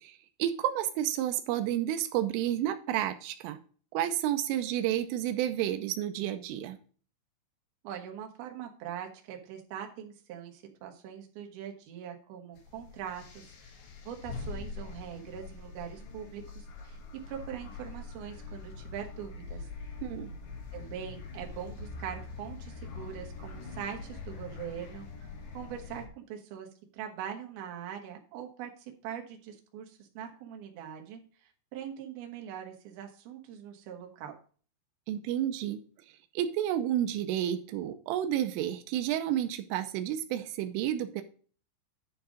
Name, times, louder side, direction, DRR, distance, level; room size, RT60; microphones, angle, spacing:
voice 1, 0.0-3.6 3.9-6.8 20.0-20.3 35.1-35.8 36.4-41.2, right 11 dB, 85° right, 9 dB, 3.3 m, -31 dB
voice 2, 7.8-13.8 14.1-17.0 17.3-19.7 20.7-26.7 26.9-34.3, right 9 dB, 65° right, 2 dB, 3.0 m, -42 dB
sound 1, 12.6-26.1, left 4 dB, 80° left, 1.6 m, -43 dB
10.5 x 4.7 x 4.9 m, 0.41 s
omnidirectional pair, 5.6 m